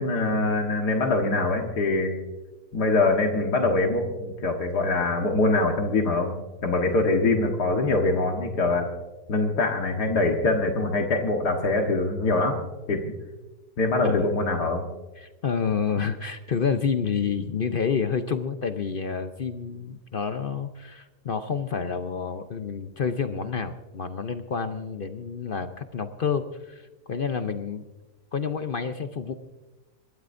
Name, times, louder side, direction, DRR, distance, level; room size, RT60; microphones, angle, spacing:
voice 1, 0.0-2.1 2.7-6.3 6.6-8.9 9.3-12.6 12.9-13.0 13.8-14.8, left 2 dB, 80° left, 2 dB, 2.0 m, -23 dB
voice 2, 15.2-27.8 28.3-29.3, left 6 dB, 55° left, 8 dB, 0.6 m, -29 dB
27.0 x 13.0 x 2.6 m, 1.1 s
omnidirectional pair, 1.7 m